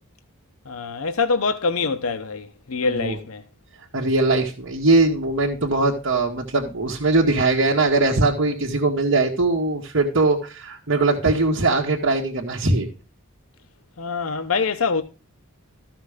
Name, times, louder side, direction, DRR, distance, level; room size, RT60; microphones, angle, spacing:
voice 1, 0.7-3.4 14.0-15.0, left 4 dB, 75° left, 0.9 m, -24 dB
voice 2, 3.9-12.9, right 2 dB, 60° right, 1.5 m, -21 dB
14.0 x 6.0 x 5.0 m
head